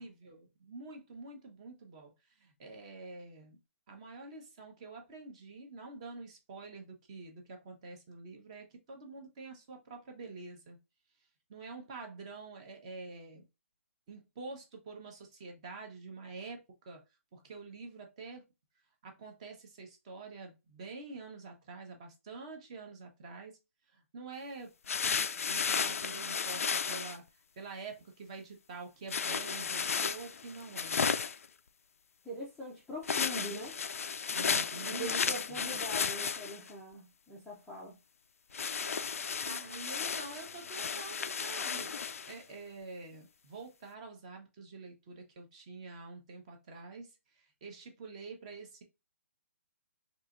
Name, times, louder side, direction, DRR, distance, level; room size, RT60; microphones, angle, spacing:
voice 1, 0.0-3.6 3.9-10.8 11.5-13.4 14.1-16.6 16.9-17.0 17.3-18.4 19.0-23.5 23.9-24.7 25.5-27.2 27.6-31.0 34.3-35.7 39.4-41.9 42.3-48.8, right 3 dB, 25° right, 0.9 m, -47 dB
sound 1, 24.9-27.2 29.1-31.5 33.0-36.7 38.5-42.3, left 6 dB, 75° left, 0.4 m, -34 dB
voice 2, 32.2-33.8 34.8-38.0, equal, ahead, 0.5 m, -42 dB
4.7 x 2.9 x 2.5 m
hypercardioid pair, 170°, 8 cm